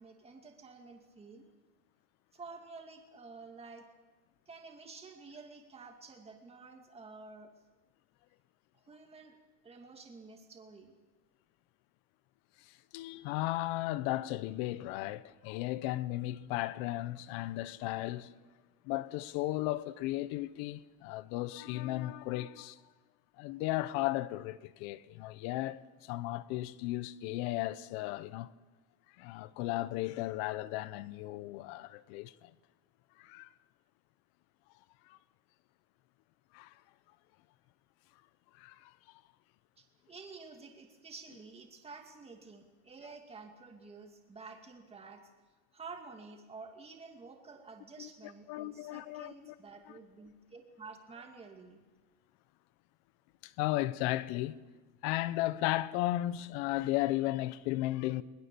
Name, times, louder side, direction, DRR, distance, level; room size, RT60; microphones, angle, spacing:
voice 1, 0.0-1.5 2.3-3.9 4.5-7.5 8.9-9.4 9.6-10.9 39.8-45.2 45.7-51.8, right 4 dB, 15° right, 2.3 m, -50 dB
voice 2, 12.9-18.3 18.8-22.8 23.4-28.5 29.2-32.5 33.2-33.5 35.1-35.2 36.5-36.7 38.6-38.9 48.0-49.5 53.4-54.6 55.0-58.2, left 16 dB, 80° left, 1.0 m, -35 dB
21.5 x 20.5 x 7.0 m
cardioid pair, 170°, 37 cm